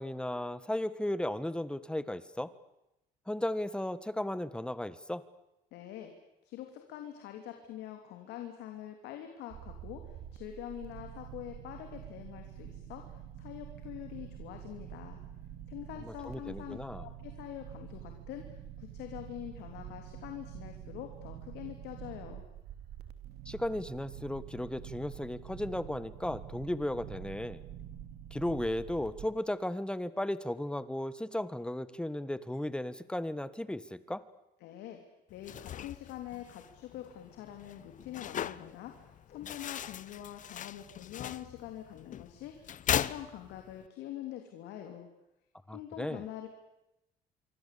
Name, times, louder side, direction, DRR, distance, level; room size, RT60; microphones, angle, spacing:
voice 1, 0.0-2.5 3.3-5.2 16.0-17.0 23.4-27.6 28.3-34.2 45.7-46.2, left 1 dB, 5° left, 15 dB, 1.5 m, -35 dB
voice 2, 5.7-6.1 6.4-15.2 15.7-22.4 34.6-35.0 35.3-45.1 45.7-46.5, left 11 dB, 85° left, 5 dB, 3.2 m, -45 dB
sound 1, 9.5-29.3, right 9 dB, 70° right, 3.1 m, -47 dB
sound 2, 35.3-43.9, left 10 dB, 50° left, 1.0 m, -39 dB
27.0 x 24.0 x 8.6 m, 0.90 s
cardioid pair, 110°, 17 cm